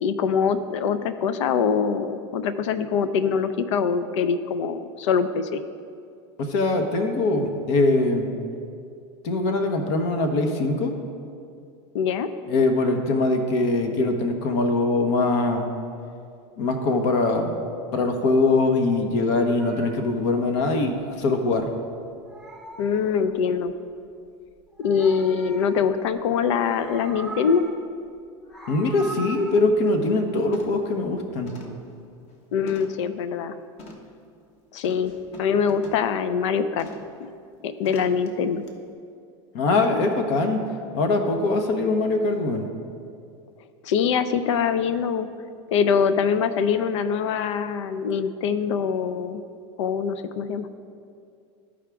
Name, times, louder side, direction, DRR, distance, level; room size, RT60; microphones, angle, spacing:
voice 1, 0.0-5.6 11.9-12.3 22.8-23.7 24.8-27.6 32.5-33.5 34.7-35.1 35.4-36.9 37.2-37.3 37.6-38.6 43.8-45.3 45.7-49.4 49.8-50.7, left 6 dB, 85° left, 12 dB, 0.5 m, -23 dB
voice 2, 6.4-8.4 9.2-11.0 12.5-15.7 16.6-17.5 17.9-21.7 28.7-31.5 39.5-40.6 40.9-42.7, left 2 dB, 65° left, 5 dB, 0.9 m, -22 dB
Meow, 19.1-21.8 22.0-23.7 24.6-26.2 26.5-27.9 28.3-29.6, right 2 dB, 5° left, 0.7 m, -42 dB
sound 1, 28.7-28.8 29.3-29.5 29.9-30.2 30.5-30.9 31.5-33.1 33.8-34.1 34.8-36.1 36.8-37.2 37.8-38.3 38.7-38.8, left 2 dB, 45° left, 1.2 m, -45 dB
13.5 x 4.9 x 3.4 m, 2.3 s
supercardioid pair, 125°, 15 cm